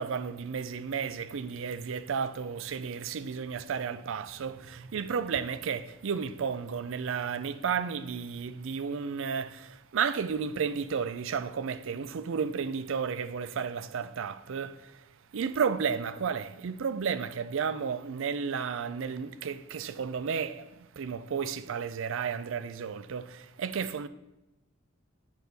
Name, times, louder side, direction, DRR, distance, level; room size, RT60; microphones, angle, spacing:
voice 1, 0.0-14.8 15.3-24.1, right 6 dB, 70° right, 0.4 m, -33 dB
9.3 x 6.1 x 3.4 m
head